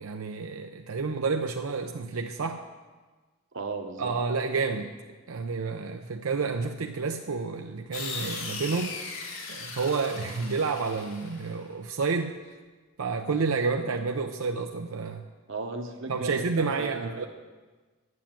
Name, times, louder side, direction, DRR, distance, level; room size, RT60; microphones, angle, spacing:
voice 1, 0.0-2.7 4.0-4.9 5.3-9.0 9.5-12.4 13.0-15.2 16.1-17.3, right 4 dB, 90° right, 4 dB, 0.6 m, -30 dB
voice 2, 3.5-4.1 15.5-17.3, right 3 dB, 60° right, 5 dB, 1.1 m, -36 dB
sound 1, 7.9-11.6, left 4 dB, 85° left, 2.3 m, -38 dB
9.6 x 7.1 x 8.8 m, 1.3 s
head